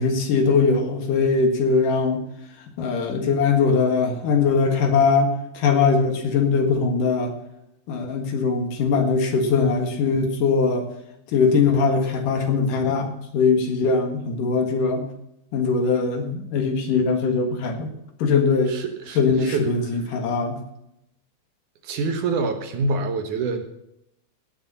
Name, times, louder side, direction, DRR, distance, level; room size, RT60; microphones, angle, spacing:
voice 1, 0.0-2.2 2.8-7.3 7.9-10.9 11.3-15.0 15.5-17.9 18.2-18.8 19.2-20.6, left 4 dB, 65° left, 5 dB, 3.2 m, -21 dB
voice 2, 18.7-19.7 21.8-23.6, right 3 dB, 65° right, 7 dB, 2.5 m, -26 dB
17.5 x 7.0 x 5.5 m, 0.81 s
omnidirectional pair, 4.1 m